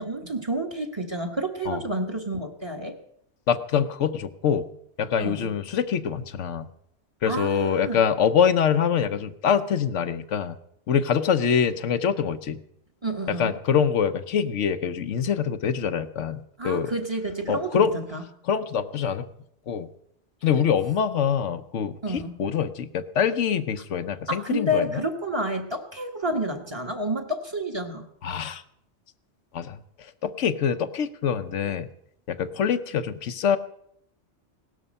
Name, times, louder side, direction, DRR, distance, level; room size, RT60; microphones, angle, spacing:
voice 1, 0.0-3.0 5.2-5.5 7.2-8.0 13.0-13.5 16.6-18.2 22.0-22.4 24.3-28.1, right 1 dB, 25° right, 5 dB, 1.4 m, -29 dB
voice 2, 3.5-4.7 5.0-6.7 7.2-10.6 10.9-12.6 13.3-16.9 17.5-18.0 18.4-19.3 19.7-19.9 20.4-25.0 28.2-28.6 29.5-29.8 30.2-31.9 32.3-33.6, left 7 dB, 85° left, 10 dB, 1.1 m, -24 dB
17.5 x 12.5 x 5.4 m, 0.73 s
omnidirectional pair, 1.2 m